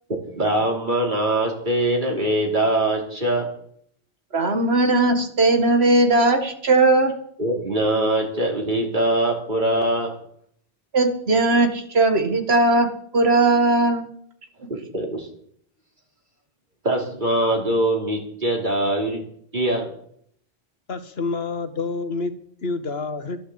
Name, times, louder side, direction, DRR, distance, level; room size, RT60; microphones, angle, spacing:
voice 1, 0.3-3.5 7.4-10.2 14.7-15.3 16.8-19.2 19.5-19.9, right 1 dB, 50° right, 1 dB, 3.3 m, -22 dB
voice 2, 4.3-7.1 10.9-12.9 13.1-14.1, right 2 dB, 80° right, 6 dB, 2.0 m, -18 dB
voice 3, 20.9-22.3 22.6-23.4, left 3 dB, 70° left, 10 dB, 1.6 m, -28 dB
12.5 x 11.5 x 7.9 m, 0.67 s
omnidirectional pair, 1.1 m